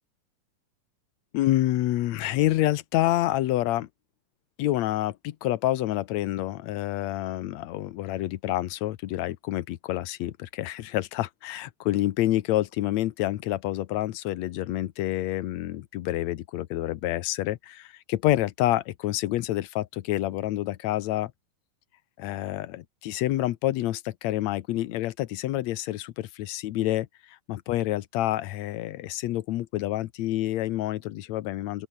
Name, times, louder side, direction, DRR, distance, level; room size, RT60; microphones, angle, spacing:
voice 1, 1.3-3.9 4.6-21.3 22.2-31.9, left 15 dB, 70° left, 1.7 m, -28 dB
open air
omnidirectional pair, 4.0 m